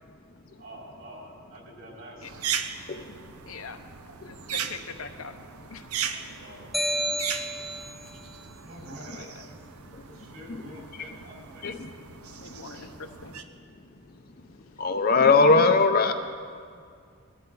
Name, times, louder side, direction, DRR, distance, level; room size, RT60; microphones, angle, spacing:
voice 1, 0.6-2.4 6.0-6.7 8.6-9.5 10.0-11.6 13.0-13.1, equal, 55° right, -3 dB, 3.9 m, -46 dB
sound 1, 2.2-13.4, right 8 dB, 80° right, 0.7 m, -38 dB
voice 2, 3.5-3.8 4.2-5.3 5.7-5.9 9.1-9.3 11.6-11.7 12.4-13.3, left 5 dB, 70° left, 6 dB, 0.9 m, -41 dB
sound 2, 6.7-8.1, equal, ahead, 0.6 m, -30 dB
voice 3, 14.8-16.1, left 4 dB, 40° left, 7 dB, 0.6 m, -20 dB
21.0 x 13.0 x 3.9 m, 2.2 s
head